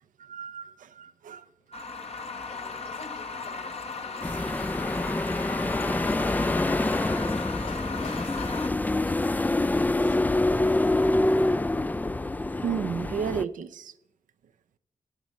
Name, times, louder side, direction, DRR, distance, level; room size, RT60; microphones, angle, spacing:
voice 1, 0.2-1.9 12.6-13.9, right 7 dB, 80° right, 11 dB, 0.6 m, -33 dB
sound 1, 1.7-8.7, left 4 dB, 50° left, 1.0 m, -37 dB
voice 2, 2.4-10.5, left 3 dB, 75° left, 1 dB, 5.8 m, -47 dB
sound 2, 4.2-13.4, left 2 dB, 15° left, 0.3 m, -26 dB
16.5 x 8.1 x 4.2 m, 0.80 s
supercardioid pair, 45°, 13 cm